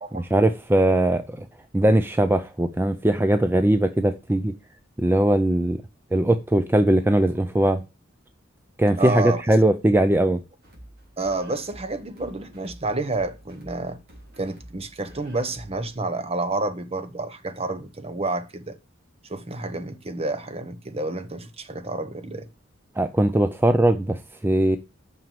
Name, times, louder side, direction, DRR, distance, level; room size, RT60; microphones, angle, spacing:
voice 1, 0.1-1.5 1.7-4.5 5.0-5.8 6.1-7.8 8.8-10.4 23.0-24.8, right 1 dB, 10° right, 0.4 m, -20 dB
voice 2, 9.0-9.4 11.2-14.0 14.4-18.7 19.3-22.5, right 2 dB, 30° right, 0.9 m, -29 dB
sound 1, 10.6-16.0, right 1 dB, 50° right, 3.1 m, -48 dB
6.1 x 6.1 x 6.9 m
head